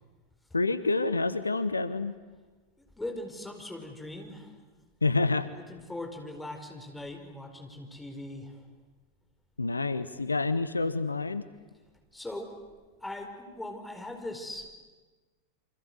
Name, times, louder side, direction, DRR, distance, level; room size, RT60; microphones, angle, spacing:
voice 1, 0.5-2.1 5.0-5.5 9.6-11.4, left 3 dB, 80° left, 13 dB, 1.0 m, -28 dB
voice 2, 2.9-4.6 5.5-8.7 12.1-12.5 13.0-14.7, left 1 dB, 5° left, 4 dB, 4.8 m, -40 dB
28.5 x 25.0 x 8.0 m, 1.3 s
figure-of-eight pair, 90°, 0 cm